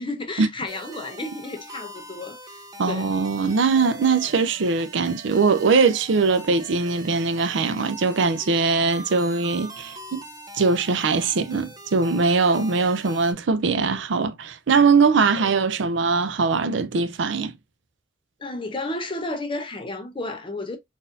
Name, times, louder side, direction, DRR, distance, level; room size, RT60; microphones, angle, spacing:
voice 1, 0.0-3.1 15.4-15.6 18.4-20.8, left 2 dB, 25° left, 0.7 m, -32 dB
sound 1, 0.7-13.3, right 2 dB, 20° right, 0.6 m, -42 dB
voice 2, 2.8-10.2 10.5-17.5, right 4 dB, 65° right, 0.5 m, -21 dB
4.0 x 2.6 x 2.5 m
head